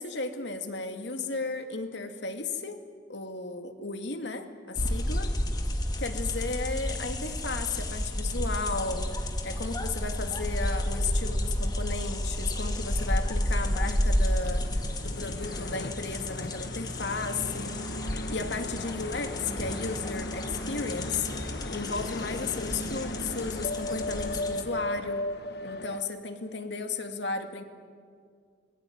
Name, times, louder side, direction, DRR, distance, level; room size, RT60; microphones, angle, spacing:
voice 1, 0.0-2.8 3.1-5.3 6.0-9.1 9.4-14.6 15.0-17.7 18.3-21.3 21.7-25.2 25.6-27.6, left 4 dB, 75° left, 5 dB, 2.4 m, -34 dB
sound 1, 4.8-24.6, left 1 dB, 20° left, 1.9 m, -31 dB
sound 2, 14.4-26.0, left 1 dB, 60° left, 1.0 m, -37 dB
26.0 x 20.5 x 9.4 m, 2.1 s
head